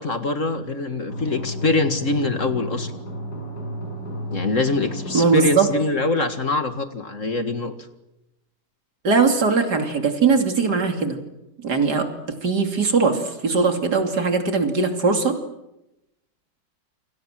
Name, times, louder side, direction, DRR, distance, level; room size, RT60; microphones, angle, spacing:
voice 1, 0.0-2.9 4.3-7.7, left 2 dB, 45° left, 8 dB, 2.2 m, -24 dB
sound 1, 1.1-5.9, equal, 65° left, 7.9 m, -33 dB
voice 2, 5.1-5.7 9.0-11.2 11.6-12.1 12.4-15.4, right 4 dB, 65° right, 5 dB, 3.4 m, -20 dB
29.0 x 24.5 x 7.6 m, 0.90 s
omnidirectional pair, 1.9 m